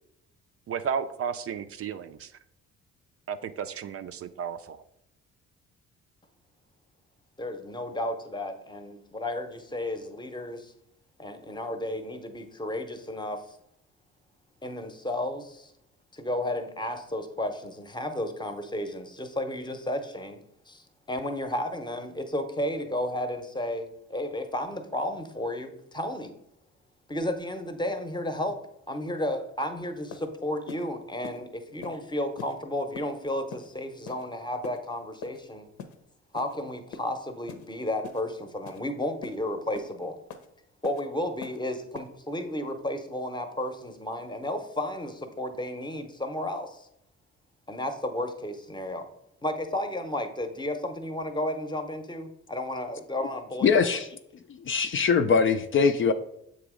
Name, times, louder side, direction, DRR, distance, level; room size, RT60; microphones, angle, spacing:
voice 1, 0.7-2.3 3.3-4.8, right 7 dB, 50° right, 10 dB, 0.4 m, -33 dB
voice 2, 7.4-10.7 11.2-13.6 14.6-15.7 16.1-26.3 27.1-28.6 28.9-35.7 36.3-40.2 40.8-46.9 47.7-49.1 49.4-53.9, left 1 dB, 15° left, 7 dB, 0.8 m, -33 dB
sound 1, 29.6-29.7 30.1-30.3 30.7-30.8 31.2-31.4 31.8-32.0 32.4-32.5 32.9-33.1 33.5-33.7 34.1-34.3 34.6-34.8 35.2-35.4 35.8-36.0 36.4-36.5 36.9-37.1 37.5-37.7 38.0-38.2 38.7-38.8 39.2-39.4 39.7-39.9 40.3-40.5 40.8-41.0 41.4-41.6 41.9-42.1, left 5 dB, 80° left, 0.8 m, -42 dB
voice 3, 53.6-54.1 54.7-56.1, left 5 dB, 45° left, 9 dB, 0.4 m, -22 dB
7.0 x 3.0 x 4.9 m, 0.76 s
cardioid pair, 90°, 30 cm